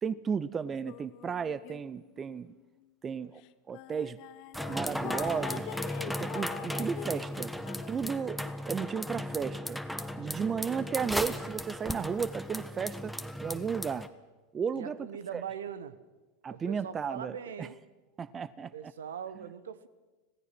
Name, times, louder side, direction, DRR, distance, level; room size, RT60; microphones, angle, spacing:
voice 1, 0.0-2.5 3.0-3.4 3.7-4.2 4.7-5.7 6.1-7.5 7.9-9.8 10.2-13.1 13.4-14.1 14.5-15.0 15.3-15.4 16.4-17.7 18.2-18.9, right 6 dB, 25° right, 18 dB, 0.6 m, -34 dB
sound 1, 0.9-2.2 2.6-2.8 3.4-3.5 3.7-8.5, left 18 dB, 50° left, 0.7 m, -44 dB
sound 2, 4.5-14.1, equal, ahead, 1.2 m, -36 dB
voice 2, 14.7-16.0 16.5-17.8 18.7-19.9, right 8 dB, 70° right, 15 dB, 1.1 m, -41 dB
26.0 x 17.5 x 6.1 m, 1.2 s
figure-of-eight pair, 85°, 0 cm